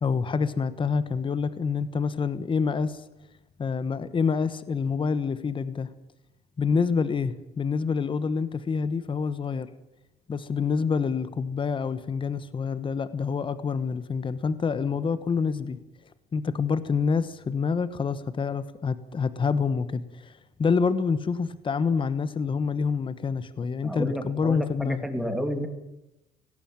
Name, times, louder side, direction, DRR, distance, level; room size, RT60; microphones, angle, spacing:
voice 1, 0.0-3.0 3.6-5.9 6.6-9.7 10.3-15.8 16.3-25.0, left 5 dB, 30° left, 15 dB, 1.2 m, -27 dB
voice 2, 23.8-25.7, equal, ahead, 7 dB, 2.6 m, -31 dB
18.5 x 17.0 x 9.0 m, 0.91 s
cardioid pair, 110°, 17 cm